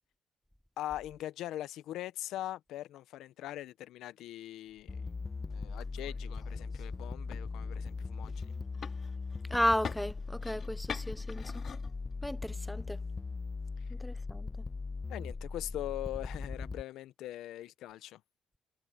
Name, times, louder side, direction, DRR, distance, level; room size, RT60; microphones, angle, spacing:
voice 1, 0.8-5.1 5.5-8.5 13.8-13.9 15.1-18.2, left 14 dB, 85° left, 0.6 m, -41 dB
sound 1, 4.7-12.6, left 7 dB, 55° left, 2.2 m, -48 dB
sound 2, 4.9-16.8, left 4 dB, 30° left, 0.9 m, -39 dB
voice 2, 9.5-11.6 12.2-13.0 14.0-14.5, equal, 5° left, 0.3 m, -33 dB
cardioid pair, 90°, 0 cm